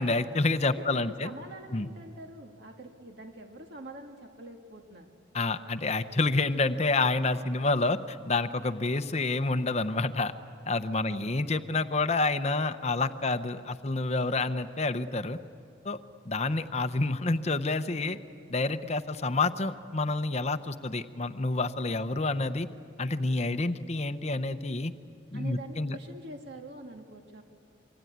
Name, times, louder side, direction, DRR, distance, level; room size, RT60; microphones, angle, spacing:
voice 1, 0.0-1.3 1.7-1.9 5.3-10.3 10.7-15.4 15.8-16.0 16.3-18.2 18.5-22.7 23.0-24.9 25.3-26.0, left 3 dB, 35° left, 10 dB, 0.8 m, -28 dB
voice 2, 0.8-5.1 10.9-11.3 25.3-27.4, right 1 dB, 55° right, 4 dB, 1.9 m, -45 dB
26.5 x 23.5 x 9.4 m, 2.4 s
head